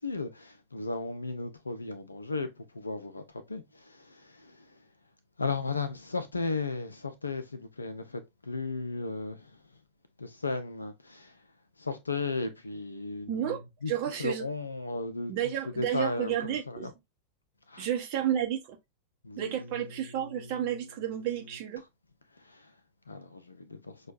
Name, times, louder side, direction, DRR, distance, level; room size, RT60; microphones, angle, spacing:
voice 1, 0.0-2.5 2.7-3.2 3.5-4.5 5.4-8.2 8.5-9.4 10.2-11.3 11.8-13.6 13.8-13.9 14.2-15.3 15.8-16.9 17.7-17.9 19.2-19.6 20.2-20.5 22.5-22.6 23.1-23.9, left 3 dB, 80° left, 0.4 m, -35 dB
voice 2, 13.3-14.5 15.3-16.9 17.8-18.6 19.4-21.8, right 10 dB, 45° right, 0.7 m, -31 dB
6.1 x 2.2 x 2.4 m
figure-of-eight pair, 90°, 0 cm